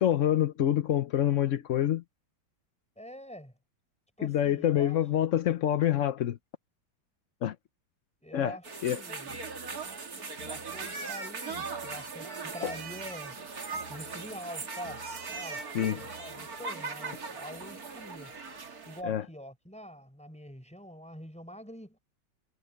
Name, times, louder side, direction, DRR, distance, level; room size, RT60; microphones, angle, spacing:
voice 1, 0.0-2.0 4.2-6.4 7.4-7.5 8.3-8.6 8.8-9.0 15.7-16.0 19.1-19.2, left 11 dB, 85° left, 0.6 m, -26 dB
voice 2, 3.0-3.5 4.2-5.0 8.2-9.4 10.4-13.4 13.9-15.1 15.3-18.4 18.9-22.0, equal, 5° left, 5.7 m, -45 dB
sound 1, 8.6-19.0, right 4 dB, 45° right, 2.7 m, -39 dB
omnidirectional pair, 2.3 m